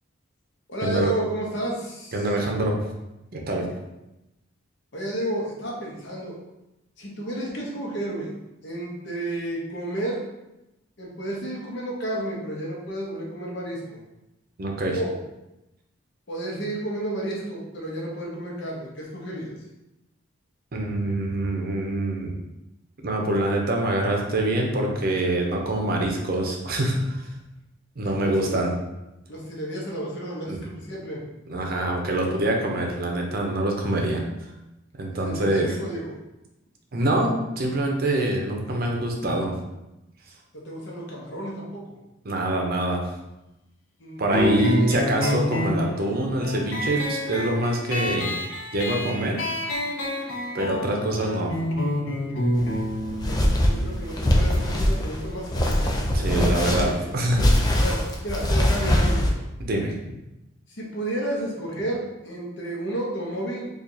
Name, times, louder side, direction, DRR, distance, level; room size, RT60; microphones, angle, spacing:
voice 1, 0.7-2.3 4.9-6.4 7.0-8.3 8.6-10.2 11.0-14.0 14.9-15.2 16.3-19.5 28.0-28.6 29.3-31.2 35.1-36.2 40.6-41.9 44.0-44.9 53.0-55.9 56.3-57.1 57.8-59.3 60.7-63.7, right 1 dB, 60° left, -3 dB, 0.9 m, -32 dB
voice 2, 2.1-2.8 3.3-3.7 14.6-15.0 20.7-22.4 23.0-27.2 28.0-28.7 30.5-30.6 31.5-34.2 35.0-35.7 36.9-39.5 42.2-43.0 44.2-48.4 48.7-49.4 50.5-51.5 56.1-57.8 59.6-59.9, right 1 dB, 50° right, 1 dB, 0.6 m, -25 dB
sound 1, 44.3-55.4, equal, 85° left, 0.7 m, -28 dB
sound 2, 52.6-59.3, left 1 dB, 20° left, 0.4 m, -22 dB
4.5 x 2.4 x 2.7 m, 0.94 s
head